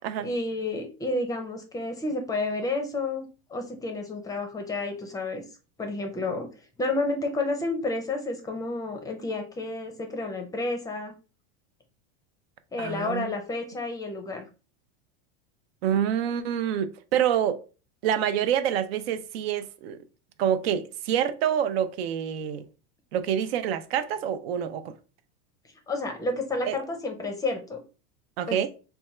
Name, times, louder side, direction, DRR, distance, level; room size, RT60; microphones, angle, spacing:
voice 1, 0.2-5.4 5.8-6.5 6.8-11.1 12.7-14.5 25.9-27.8 28.5-28.6, left 2 dB, 10° left, 0.5 m, -30 dB
voice 2, 12.8-13.3 15.8-17.6 18.0-20.0 20.4-22.6 23.1-24.9 26.6-26.8 28.4-28.7, right 9 dB, 75° right, 0.6 m, -27 dB
3.5 x 2.2 x 4.2 m
supercardioid pair, 150°, 30 cm